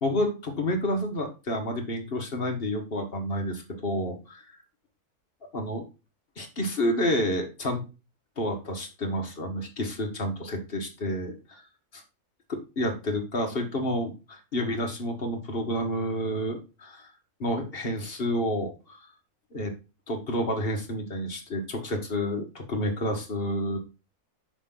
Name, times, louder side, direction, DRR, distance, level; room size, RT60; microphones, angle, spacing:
voice 1, 0.0-4.4 5.5-5.8 6.4-7.8 8.4-11.6 11.9-12.0 12.5-17.1 17.4-19.0 19.5-19.7 20.1-23.8, equal, 40° left, 3 dB, 1.5 m, -29 dB
5.9 x 5.8 x 3.8 m, 0.30 s
omnidirectional pair, 1.6 m